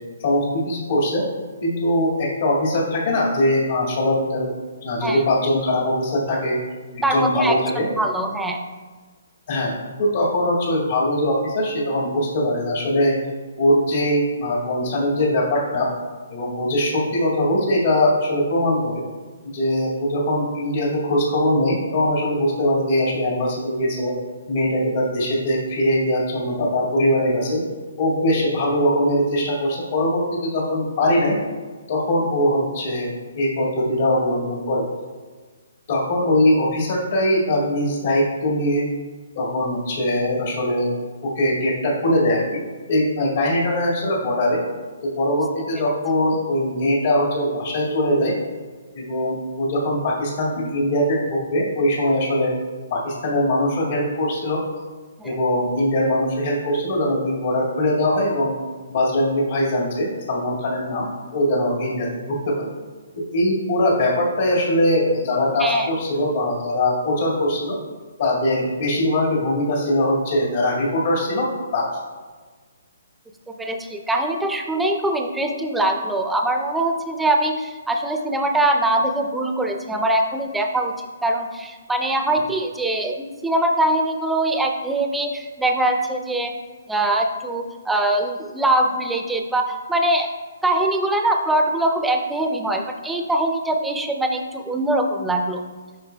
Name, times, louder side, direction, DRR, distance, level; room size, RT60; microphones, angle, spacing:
voice 1, 0.2-1.2 1.6-4.5 4.8-6.6 6.9-7.9 9.5-13.1 13.6-15.9 16.3-19.0 19.4-24.1 24.5-27.6 28.0-31.4 31.9-34.8 35.9-38.9 39.4-40.9 41.2-42.6 42.9-44.6 45.0-48.3 48.9-52.5 52.9-54.6 55.2-58.5 58.9-61.1 61.3-62.7 63.3-67.8 68.2-71.9, left 1 dB, 60° left, -4 dB, 1.9 m, -21 dB
voice 2, 7.0-8.6 55.2-55.4 65.6-65.9 73.6-80.9 81.2-86.5 86.9-90.3 90.6-95.6, right 1 dB, 5° right, 3 dB, 0.6 m, -22 dB
9.1 x 5.5 x 2.3 m, 1.4 s
hypercardioid pair, 140°, 0 cm